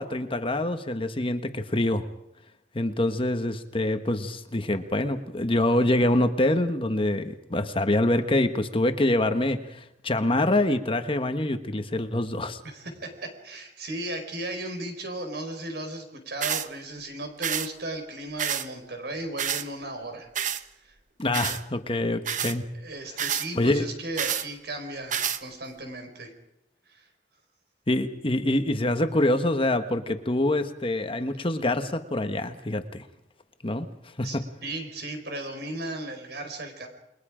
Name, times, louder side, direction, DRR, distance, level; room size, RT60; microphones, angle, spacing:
voice 1, 0.0-2.1 2.7-12.6 21.2-22.6 23.5-23.8 27.9-33.1 33.6-33.9 34.2-34.4, left 1 dB, 30° left, 8 dB, 1.3 m, -25 dB
voice 2, 12.6-20.3 20.7-21.0 22.7-26.3 26.9-27.1 34.2-34.4 34.6-36.9, right 2 dB, 65° right, 5 dB, 5.0 m, -36 dB
sound 1, 16.4-16.7 17.4-17.7 18.4-18.7 19.4-19.6 20.4-20.6 21.3-21.6 22.2-22.6 23.2-23.5 24.2-24.5 25.1-25.4, right 9 dB, 45° right, 1.0 m, -28 dB
29.0 x 22.0 x 5.1 m, 0.85 s
head